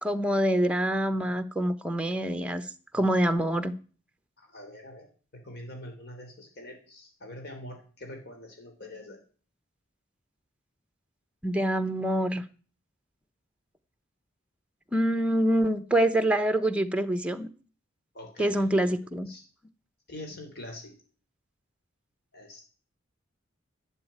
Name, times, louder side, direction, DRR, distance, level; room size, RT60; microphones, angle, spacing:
voice 1, 0.0-2.7 2.9-3.7 11.4-12.4 14.9-17.5 18.4-19.3, right 1 dB, 5° right, 10 dB, 1.0 m, -25 dB
voice 2, 4.4-5.1 5.3-9.2 18.1-18.9 19.3-19.4 20.1-20.9 22.3-22.6, left 1 dB, 55° left, 3 dB, 3.3 m, -44 dB
12.5 x 8.2 x 8.8 m, 0.40 s
head